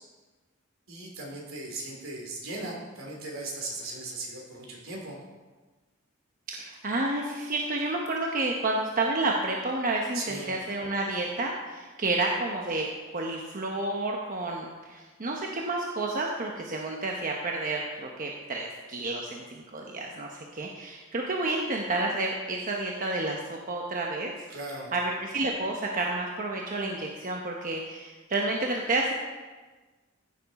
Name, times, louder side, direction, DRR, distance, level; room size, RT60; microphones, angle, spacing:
voice 1, 0.9-5.2 10.1-10.5 24.5-24.9, right 2 dB, 75° right, -1 dB, 3.2 m, -38 dB
voice 2, 6.5-12.9 13.1-24.3 24.9-29.1, right 2 dB, 40° right, 0 dB, 0.9 m, -30 dB
15.0 x 7.1 x 4.2 m, 1.3 s
head